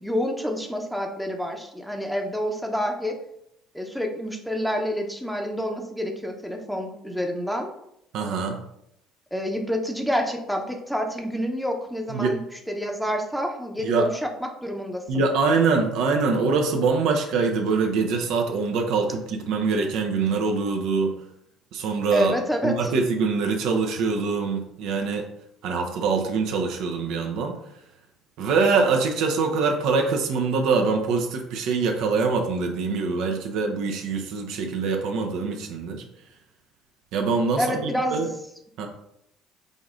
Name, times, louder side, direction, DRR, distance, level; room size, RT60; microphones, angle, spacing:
voice 1, 0.0-3.1 3.7-7.7 9.3-12.4 12.7-14.3 14.6-15.2 22.1-22.9 37.6-38.2, equal, ahead, 3 dB, 0.7 m, -28 dB
voice 2, 8.1-8.6 12.1-12.3 13.8-14.1 15.1-21.1 21.7-22.3 22.6-25.2 25.6-27.6 28.4-36.0 37.1-38.3 38.8-38.9, right 4 dB, 65° right, 3 dB, 0.5 m, -24 dB
5.0 x 2.6 x 2.5 m, 0.78 s
hypercardioid pair, 60°, 0 cm